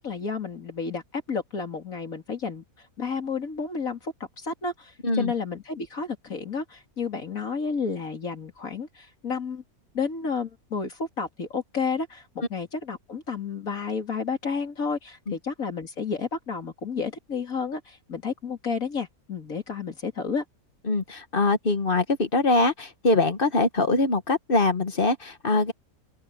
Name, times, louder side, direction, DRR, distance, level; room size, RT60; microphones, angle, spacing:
voice 1, 0.0-9.6 9.9-20.4, left 5 dB, 65° left, 3.2 m, -31 dB
voice 2, 20.9-25.7, left 2 dB, 40° left, 1.3 m, -23 dB
open air
omnidirectional pair, 1.6 m